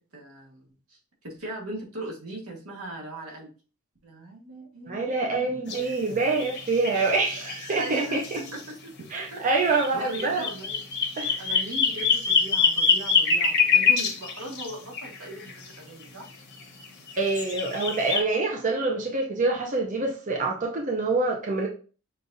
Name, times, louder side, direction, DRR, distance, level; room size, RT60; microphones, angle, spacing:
voice 1, 0.1-1.0 1.2-3.5 4.0-5.7 7.1-10.8 11.4-16.3, right 1 dB, 80° right, -2 dB, 1.5 m, -39 dB
voice 2, 4.9-8.2 9.1-10.5 11.2-11.4 17.2-21.7, right 3 dB, 35° right, 0 dB, 0.6 m, -26 dB
sound 1, 5.7-5.8 6.3-8.6 9.7-15.7 16.6-18.2, left 6 dB, 55° left, 0.9 m, -25 dB
6.5 x 2.5 x 2.6 m, 0.37 s
head